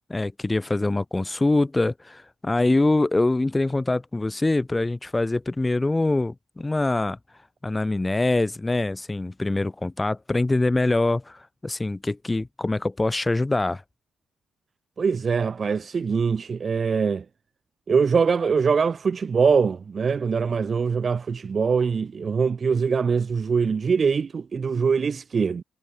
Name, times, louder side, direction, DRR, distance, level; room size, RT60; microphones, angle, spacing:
voice 1, 0.1-7.2 7.6-13.8, left 2 dB, 15° left, 2.3 m, -24 dB
voice 2, 15.0-17.2 17.9-25.6, right 5 dB, 40° right, 2.8 m, -23 dB
cardioid pair, 90°, 0 cm